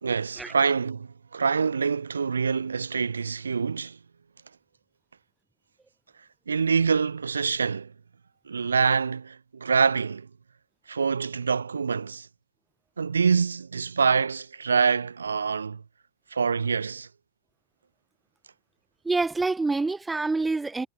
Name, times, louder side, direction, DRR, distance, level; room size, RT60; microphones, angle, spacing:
voice 1, 0.0-4.0 6.5-7.9 8.5-10.3 10.9-12.3 13.0-15.8 16.3-17.1, right 5 dB, 75° right, 0.4 m, -25 dB
voice 2, 19.0-20.9, right 3 dB, 10° right, 0.6 m, -26 dB
figure-of-eight pair, 90°, 0 cm